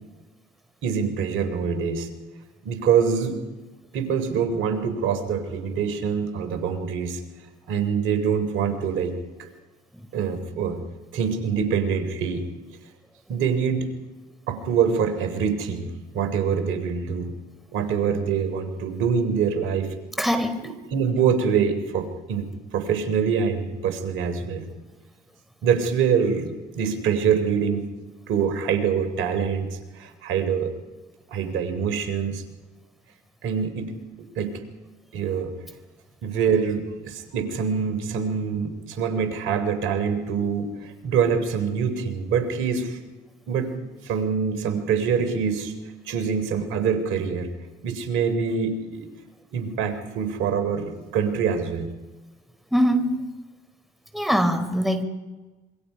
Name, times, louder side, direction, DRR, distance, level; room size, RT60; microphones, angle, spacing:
voice 1, 0.8-2.1 2.7-3.4 3.9-7.2 7.7-9.5 10.1-10.8 11.1-12.5 13.3-13.9 14.5-17.3 17.7-19.9 20.6-24.7 25.6-27.8 28.3-30.7 31.3-32.4 33.4-33.9 34.4-34.5 35.1-35.5 36.2-43.0 43.5-43.7 44.0-45.7 46.1-47.5 47.8-49.1 49.5-51.9, right 6 dB, 75° right, 9 dB, 3.6 m, -25 dB
voice 2, 20.2-20.7 52.7-53.2 54.1-55.0, equal, ahead, 8 dB, 3.9 m, -22 dB
26.5 x 24.0 x 5.8 m, 1.2 s
hypercardioid pair, 60°, 21 cm